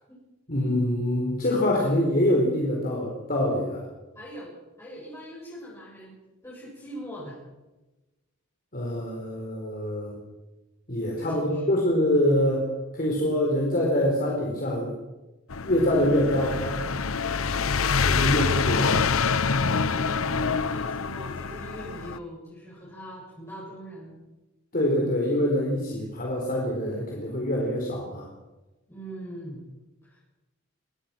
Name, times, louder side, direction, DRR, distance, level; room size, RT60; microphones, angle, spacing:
voice 1, 0.5-3.8 8.7-10.2 10.9-12.7 12.9-14.9 15.6-16.8 18.0-19.0 24.7-28.3, left 1 dB, 45° left, -1 dB, 4.2 m, -25 dB
voice 2, 4.1-6.1 6.4-7.4 11.2-11.7 19.9-20.2 20.7-24.2 28.9-29.6 30.0-30.2, right 1 dB, 15° left, -8 dB, 7.9 m, -42 dB
sound 1, 15.5-22.2, left 5 dB, 80° left, 0.9 m, -26 dB
24.0 x 19.5 x 6.0 m, 1.1 s
head